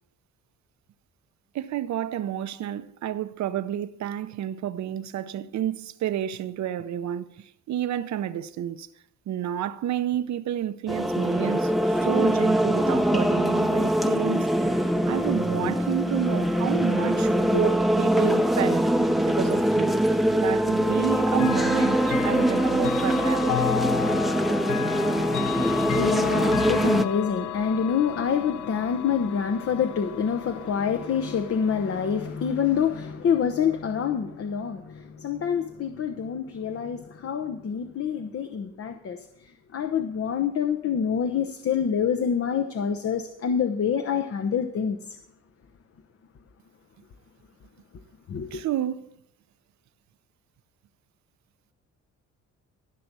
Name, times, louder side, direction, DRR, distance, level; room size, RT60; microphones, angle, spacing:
voice 1, 1.5-8.9 9.3-14.5 15.1-20.0 20.4-23.7 48.5-49.1, right 11 dB, 65° right, 0.8 m, -30 dB
sound 1, 10.9-27.1, equal, ahead, 0.7 m, -23 dB
Chime / Clock, 21.3-32.2, left 13 dB, 75° left, 0.4 m, -33 dB
voice 2, 24.9-45.2 48.3-48.6, left 7 dB, 50° left, 0.9 m, -27 dB
14.5 x 6.0 x 6.8 m
cardioid pair, 90°, 30 cm